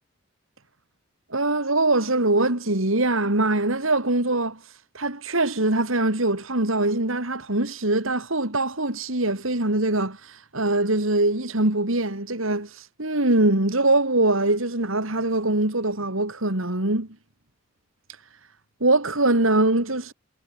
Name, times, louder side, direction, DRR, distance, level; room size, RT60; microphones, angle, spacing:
voice 1, 1.3-4.6 4.9-17.1 18.8-20.1, right 2 dB, 75° right, 3.5 m, -23 dB
head